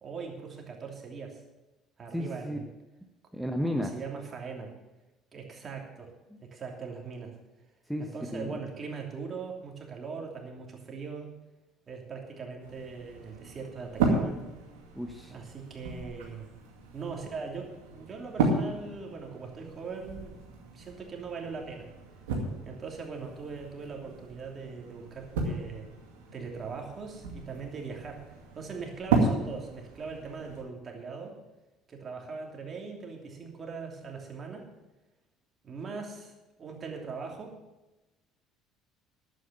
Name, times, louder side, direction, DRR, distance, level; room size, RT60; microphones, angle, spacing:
voice 1, 0.0-1.4 2.0-2.7 3.7-4.7 5.3-6.1 6.4-7.3 8.0-11.3 11.9-14.4 15.3-16.5 16.9-20.4 20.7-21.9 22.6-25.9 26.3-31.4 31.9-34.7 35.6-37.5, right 5 dB, 35° right, 1 dB, 3.0 m, -40 dB
voice 2, 2.1-2.6 3.3-3.9 7.9-8.1 8.3-8.6 15.0-15.4, equal, ahead, 3 dB, 1.1 m, -32 dB
sound 1, 12.6-30.6, right 3 dB, 70° right, 2.2 m, -34 dB
11.5 x 8.7 x 7.1 m, 1.1 s
figure-of-eight pair, 60°, 0 cm